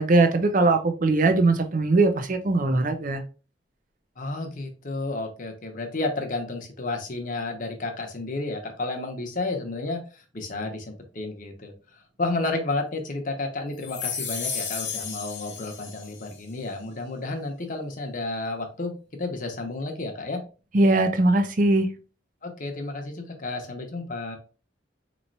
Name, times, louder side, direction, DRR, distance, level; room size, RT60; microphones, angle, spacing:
voice 1, 0.0-3.2 20.7-21.9, right 2 dB, 45° right, 0.5 m, -20 dB
voice 2, 4.2-11.7 12.2-20.4 22.4-24.4, left 2 dB, 45° left, 0.9 m, -31 dB
sound 1, 13.8-16.3, left 6 dB, 75° left, 1.0 m, -33 dB
4.2 x 3.1 x 2.6 m
head